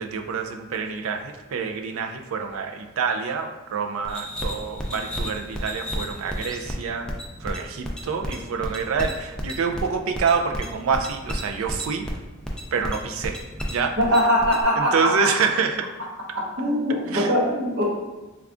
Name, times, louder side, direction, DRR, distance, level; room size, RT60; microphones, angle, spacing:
voice 1, 0.0-7.1 7.4-12.0 12.7-13.4 13.7-14.0 14.8-15.9 17.1-17.3, right 5 dB, 80° right, 5 dB, 0.4 m, -27 dB
sound 1, 4.0-14.6, equal, 5° left, 0.3 m, -32 dB
voice 2, 14.0-15.3 16.3-17.8, equal, 55° right, -2 dB, 0.8 m, -22 dB
3.4 x 2.3 x 3.6 m, 1.1 s
head